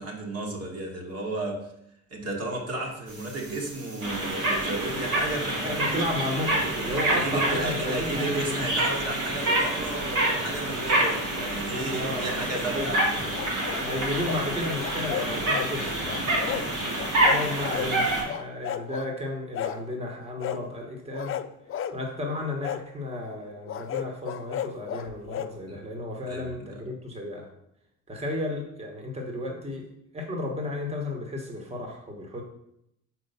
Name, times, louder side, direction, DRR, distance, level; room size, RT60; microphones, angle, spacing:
voice 1, 0.0-1.7 2.1-6.1 6.5-6.7 7.0-13.5 15.8-16.7 25.7-25.8 26.3-26.8, right 2 dB, 55° right, 0 dB, 1.6 m, -33 dB
sound 1, 3.1-18.2, right 1 dB, 85° right, 2.3 m, -28 dB
voice 2, 5.6-8.4 11.9-12.9 13.6-16.0 17.2-21.4 21.9-27.5 28.1-29.8 30.1-32.4, left 1 dB, 20° right, 1 dB, 1.2 m, -33 dB
sound 2, 13.3-14.4 14.8-15.7 16.1-16.7 17.0-17.9 18.3-19.1 19.5-19.8 20.4-20.6 21.1-22.0 22.6-22.8 23.7-25.5, left 10 dB, 45° left, 0.4 m, -33 dB
4.6 x 4.6 x 5.5 m, 0.77 s
cardioid pair, 90°, 30 cm